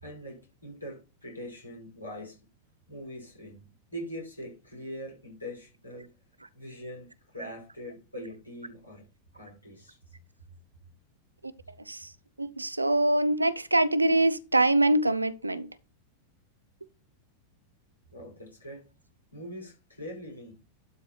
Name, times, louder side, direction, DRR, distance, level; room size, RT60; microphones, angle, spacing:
voice 1, 0.0-2.5 2.9-6.1 6.5-9.1 9.3-10.0 18.1-18.9 19.3-20.5, equal, 85° left, 5.3 m, -42 dB
voice 2, 12.4-15.7, right 1 dB, 85° right, 0.7 m, -24 dB
12.0 x 4.9 x 4.4 m
figure-of-eight pair, 90°, 0 cm